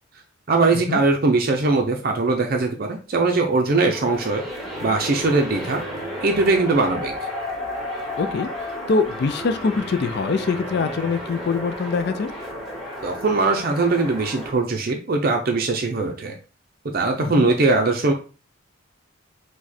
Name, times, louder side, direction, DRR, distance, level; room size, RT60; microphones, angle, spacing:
voice 1, 0.5-4.4 4.8-5.8 6.2-7.1 13.0-16.4 16.9-18.1, right 3 dB, 45° right, 3 dB, 0.5 m, -21 dB
sound 1, 3.9-14.5, equal, ahead, 1.5 m, -32 dB
voice 2, 8.2-8.5 8.9-12.3 17.2-17.5, left 4 dB, 50° left, 8 dB, 0.4 m, -24 dB
4.8 x 2.2 x 4.1 m, 0.36 s
head